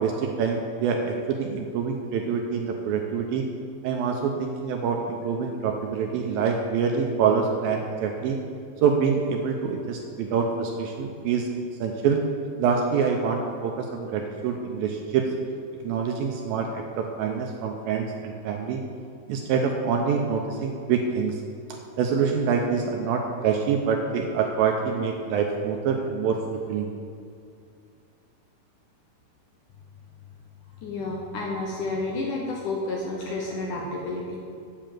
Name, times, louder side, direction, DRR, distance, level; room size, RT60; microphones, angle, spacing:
voice 1, 0.0-3.5 3.8-8.4 8.8-11.5 11.8-12.2 12.6-15.3 15.8-18.8 19.3-21.4 22.0-26.9, right 6 dB, 80° right, 2 dB, 2.2 m, -26 dB
voice 2, 30.8-34.4, left 2 dB, 70° left, -1 dB, 2.0 m, -30 dB
8.6 x 6.9 x 7.6 m, 2.4 s
omnidirectional pair, 4.7 m